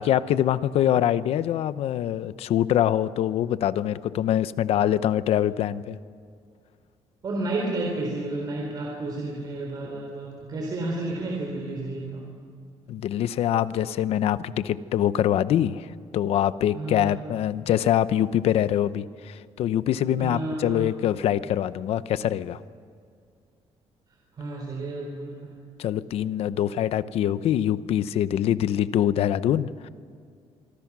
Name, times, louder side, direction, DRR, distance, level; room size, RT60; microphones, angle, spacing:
voice 1, 0.0-6.0 12.9-15.9 16.1-22.6 25.8-29.9, left 11 dB, 65° left, 15 dB, 0.8 m, -24 dB
voice 2, 7.2-12.3 16.7-17.1 20.2-20.9 24.3-25.5, right 2 dB, 35° right, 0 dB, 3.9 m, -31 dB
26.0 x 24.0 x 6.1 m, 2.2 s
cardioid pair, 170°, 11 cm